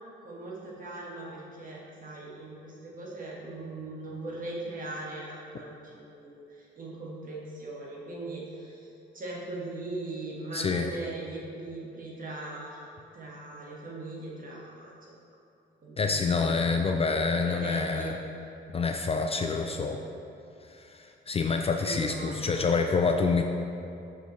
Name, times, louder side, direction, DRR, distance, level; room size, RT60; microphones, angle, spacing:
voice 1, 0.2-8.9 9.1-12.8 13.1-14.9 15.8-17.2 17.5-18.2 19.7-19.9 21.8-22.7, right 2 dB, 45° right, -4 dB, 1.5 m, -40 dB
voice 2, 10.5-10.9 16.0-18.2 18.7-20.0 20.7-23.4, left 4 dB, 30° left, 4 dB, 0.3 m, -27 dB
6.1 x 5.5 x 3.1 m, 2.7 s
cardioid pair, 90°, 20 cm